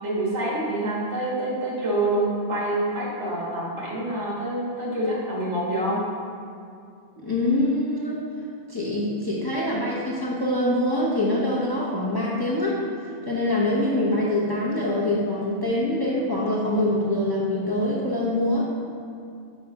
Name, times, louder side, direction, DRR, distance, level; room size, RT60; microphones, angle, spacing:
voice 1, 0.0-6.1, right 1 dB, 75° right, -5 dB, 1.7 m, -26 dB
voice 2, 7.2-8.2 8.7-12.8 13.2-18.7, left 1 dB, 25° left, -6 dB, 0.7 m, -24 dB
5.5 x 4.2 x 4.8 m, 2.4 s
omnidirectional pair, 1.2 m